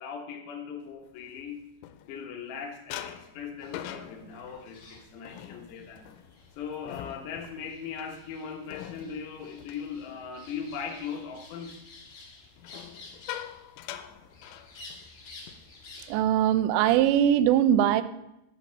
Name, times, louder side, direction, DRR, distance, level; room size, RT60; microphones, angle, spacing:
voice 1, 0.0-1.6 2.1-6.0 6.6-11.8, left 6 dB, 70° left, 3 dB, 3.0 m, -39 dB
sound 1, 1.0-2.5 2.9-10.7 11.1-11.4 12.6-15.2 15.5-15.7 16.0-16.3 16.8-17.4, left 11 dB, 85° left, 3.1 m, -44 dB
sound 2, 3.6-16.2, left 3 dB, 50° left, 2.1 m, -52 dB
voice 2, 16.1-18.0, right 10 dB, 85° right, 11 dB, 2.6 m, -21 dB
10.5 x 4.1 x 6.7 m, 0.88 s
omnidirectional pair, 5.5 m